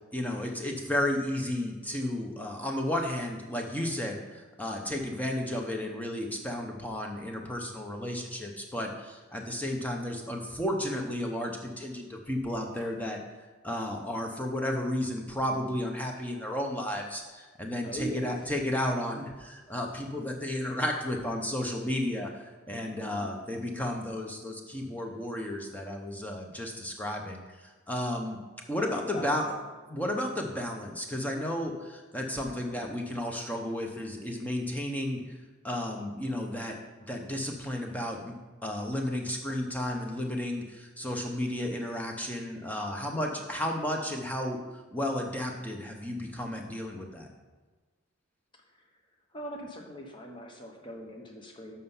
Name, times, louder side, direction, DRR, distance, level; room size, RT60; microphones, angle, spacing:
voice 1, 0.1-13.2 13.6-28.4 28.7-29.5 29.9-35.4 35.6-38.3 38.6-47.3, left 1 dB, 10° left, 1 dB, 0.8 m, -33 dB
voice 2, 17.8-18.3 23.0-23.3 28.8-29.6 48.7-48.8 49.3-51.8, right 1 dB, 25° left, 1 dB, 1.1 m, -41 dB
7.6 x 5.5 x 5.6 m, 1.3 s
head